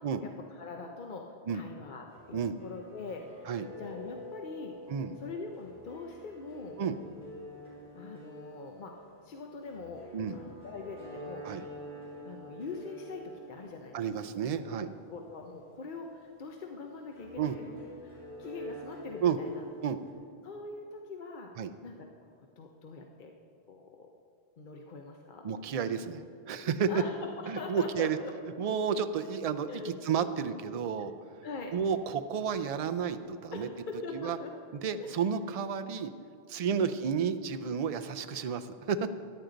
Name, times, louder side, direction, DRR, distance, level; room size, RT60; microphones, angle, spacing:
voice 1, 0.0-3.5 3.8-4.8 5.2-6.8 7.9-11.5 12.2-14.0 14.6-19.6 20.4-21.5 21.8-22.3 22.6-23.4 23.7-24.1 24.6-25.5 26.9-28.3 29.7-29.9 31.4-31.8 33.5-34.5 35.0-35.2 36.7-36.9, left 4 dB, 55° left, 2 dB, 0.8 m, -43 dB
sound 1, 2.1-20.1, left 1 dB, 75° left, 3.1 m, -48 dB
voice 2, 13.9-14.9 17.4-17.6 19.2-19.4 19.8-20.0 21.6-21.7 25.4-26.9 27.5-28.2 28.6-31.4 31.7-33.7 34.1-34.4 34.7-36.1 36.5-39.1, right 7 dB, 50° right, 9 dB, 0.5 m, -31 dB
14.0 x 10.0 x 3.9 m, 2.5 s
omnidirectional pair, 1.0 m